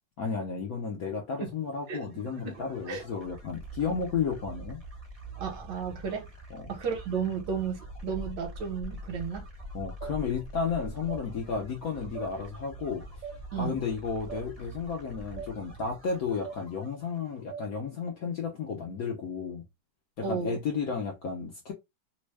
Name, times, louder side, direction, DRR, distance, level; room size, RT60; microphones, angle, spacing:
voice 1, 0.2-4.8 6.5-6.7 9.7-13.0 13.5-19.6 20.2-21.7, left 5 dB, 65° left, 0.9 m, -33 dB
sound 1, 1.7-17.4, right 1 dB, 25° right, 0.8 m, -44 dB
voice 2, 2.4-3.0 5.4-6.3 6.7-9.5 13.5-13.8 20.2-20.6, right 6 dB, 70° right, 1.5 m, -33 dB
sound 2, 10.0-10.2 11.1-11.2 12.1-12.3 13.2-13.4 14.3-14.4 15.4-15.5 16.4-16.6 17.5-17.7, right 6 dB, 50° right, 1.1 m, -39 dB
3.4 x 2.1 x 3.2 m
omnidirectional pair, 2.2 m